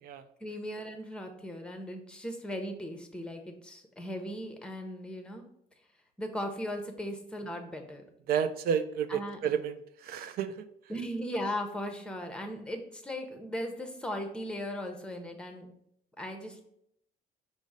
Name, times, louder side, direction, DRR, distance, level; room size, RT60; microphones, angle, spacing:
voice 1, 0.4-5.4 6.2-8.0 9.1-9.4 10.9-15.7 16.2-16.6, equal, 5° left, 5 dB, 0.7 m, -37 dB
voice 2, 8.3-9.7 10.0-10.5, right 8 dB, 65° right, 11 dB, 0.4 m, -30 dB
5.2 x 2.1 x 4.7 m, 0.73 s
cardioid pair, 110°, 17 cm